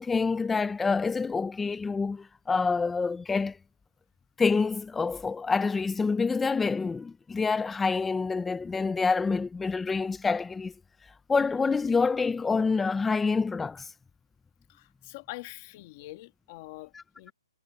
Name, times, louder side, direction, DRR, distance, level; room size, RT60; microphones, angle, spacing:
voice 1, 0.0-3.6 4.4-10.7 11.3-13.9 16.9-17.3, left 4 dB, 5° left, 0.3 m, -27 dB
voice 2, 14.7-17.3, left 19 dB, 20° left, 1.5 m, -44 dB
hypercardioid pair, 175°, 3 cm